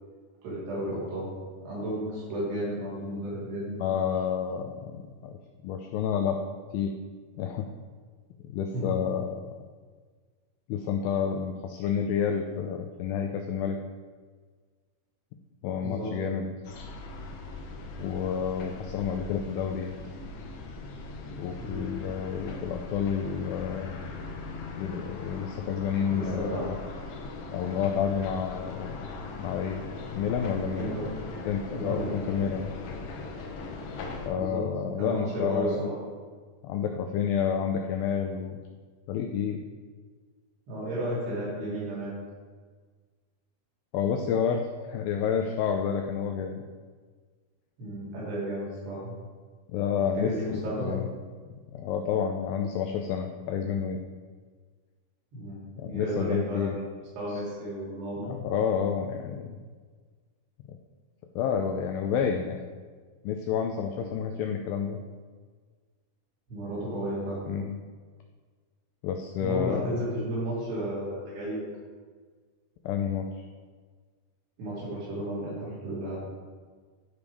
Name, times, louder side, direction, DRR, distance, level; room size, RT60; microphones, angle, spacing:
voice 1, 0.4-1.3 1.6-3.8 8.7-9.0 15.8-16.1 21.6-21.9 26.1-26.7 30.7-31.1 31.7-32.2 34.3-34.6 35.0-36.0 40.7-42.1 47.8-49.1 50.1-51.0 55.3-55.6 55.9-56.8 57.2-58.4 64.0-64.1 66.5-67.5 69.4-71.7 74.6-76.2, right 1 dB, 75° right, -7 dB, 4.9 m, -33 dB
voice 2, 3.8-5.4 5.6-6.4 6.7-6.9 7.4-7.6 8.4-9.4 10.7-13.8 15.6-16.5 18.0-19.9 21.4-23.9 24.8-26.8 27.5-29.8 30.1-30.9 31.5-32.7 34.3-35.9 36.6-38.6 39.1-39.7 43.9-44.6 44.9-46.6 49.7-51.1 51.7-54.0 55.8-56.8 58.3-59.6 61.4-62.6 63.2-65.0 67.5-67.8 69.0-69.9 72.9-73.5, left 7 dB, 90° left, 4 dB, 2.0 m, -29 dB
sound 1, 16.6-34.3, left 3 dB, 70° left, 2.1 m, -40 dB
11.0 x 4.9 x 5.2 m, 1.5 s
omnidirectional pair, 4.8 m